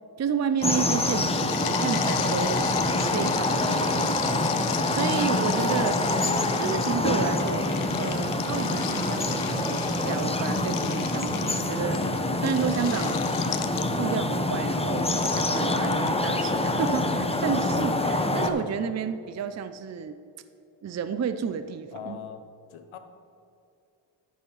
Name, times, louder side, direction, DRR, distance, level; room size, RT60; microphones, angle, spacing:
voice 1, 0.2-2.7 3.0-4.2 4.9-6.0 6.6-12.0 12.4-13.3 14.0-20.2 20.8-22.2, right 7 dB, 35° right, 11 dB, 0.5 m, -31 dB
sound 1, 0.6-14.2 15.0-16.9, left 12 dB, 90° left, 0.7 m, -36 dB
sound 2, 0.6-18.5, left 2 dB, 10° left, 0.8 m, -26 dB
voice 2, 16.8-17.2 21.9-22.4 22.7-23.0, left 9 dB, 75° left, 8 dB, 1.0 m, -40 dB
10.0 x 5.6 x 5.6 m, 2.6 s
cardioid pair, 60°, 49 cm